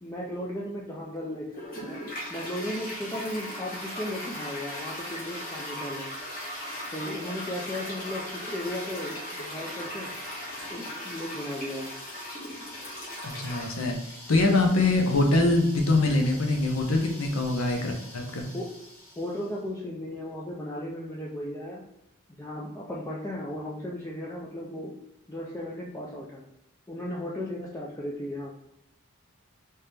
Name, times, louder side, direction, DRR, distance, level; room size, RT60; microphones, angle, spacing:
voice 1, 0.0-6.1 6.9-10.1 10.7-12.0 13.5-13.6 18.5-18.7 19.2-21.8 22.4-24.9 25.3-26.4 26.9-28.5, left 1 dB, 15° left, -4 dB, 0.4 m, -36 dB
Toilet flush, 1.5-19.5, left 1 dB, 40° left, 1.3 m, -39 dB
voice 2, 13.2-18.5, left 2 dB, 70° left, 2 dB, 0.7 m, -24 dB
3.5 x 2.8 x 3.3 m, 0.84 s
head